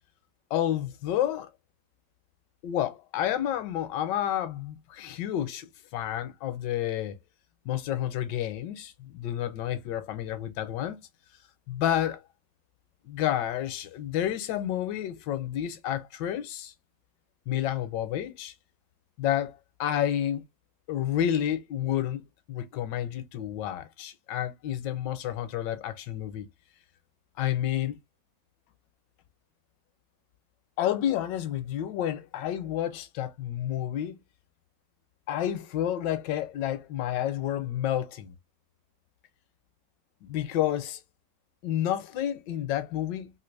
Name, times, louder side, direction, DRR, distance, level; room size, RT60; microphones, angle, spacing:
voice 1, 0.5-1.5 2.6-7.2 7.6-11.0 11.7-12.2 13.0-16.7 17.5-18.5 19.2-20.4 20.9-22.2 22.5-26.5 27.4-28.0 30.8-34.2 35.3-38.3 40.2-41.0 41.6-43.3, left 11 dB, 85° left, 1.3 m, -30 dB
3.1 x 2.8 x 3.1 m
omnidirectional pair, 1.9 m